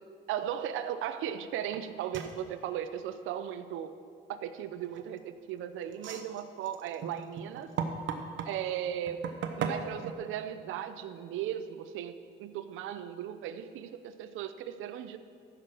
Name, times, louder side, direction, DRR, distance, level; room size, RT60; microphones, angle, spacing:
voice 1, 0.3-3.9 4.3-7.7 8.4-9.3 9.6-15.2, right 10 dB, 90° right, 11 dB, 0.6 m, -37 dB
sound 1, 1.7-1.8 2.1-2.4 4.8-5.3 5.9-8.5 9.1-10.1, right 7 dB, 75° right, 0.9 m, -36 dB
15.0 x 6.4 x 4.4 m, 2.2 s
cardioid pair, 90°, 20 cm